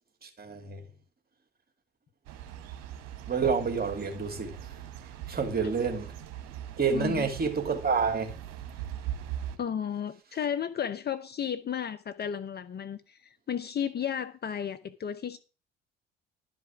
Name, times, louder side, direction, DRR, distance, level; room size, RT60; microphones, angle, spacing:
voice 1, 0.2-0.8 3.3-4.8 5.3-6.1 6.8-8.4, right 5 dB, 30° right, 2.8 m, -29 dB
sound 1, 2.3-9.6, right 11 dB, 60° right, 1.4 m, -41 dB
voice 2, 6.9-7.3 9.6-13.2 13.5-15.4, left 8 dB, 35° left, 0.8 m, -33 dB
11.5 x 5.1 x 7.1 m
figure-of-eight pair, 50°, 30 cm